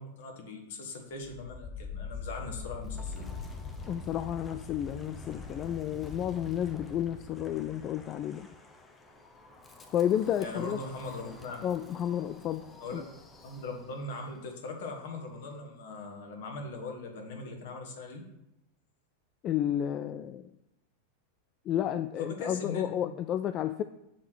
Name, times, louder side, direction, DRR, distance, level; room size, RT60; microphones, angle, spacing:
voice 1, 0.0-3.3 10.4-11.6 12.8-13.1 13.4-18.2 22.2-23.1, left 3 dB, 55° left, 2 dB, 1.6 m, -40 dB
Wind, 1.2-14.1, left 4 dB, 15° left, 0.9 m, -44 dB
voice 2, 3.9-8.5 9.9-10.8 11.6-12.6 12.9-13.0 19.4-20.5 21.7-23.8, left 10 dB, 35° left, 10 dB, 0.3 m, -31 dB
7.3 x 3.7 x 6.2 m, 0.88 s
figure-of-eight pair, 90°, 0 cm